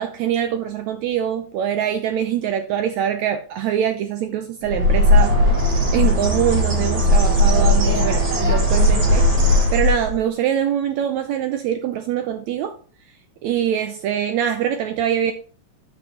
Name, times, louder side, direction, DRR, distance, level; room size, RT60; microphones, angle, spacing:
voice 1, 0.0-5.4 5.9-12.8 13.4-15.3, right 9 dB, 80° right, 1.6 m, -23 dB
Bird, 4.6-10.2, left 1 dB, 55° right, 6.0 m, -17 dB
9.7 x 7.0 x 2.8 m
omnidirectional pair, 3.8 m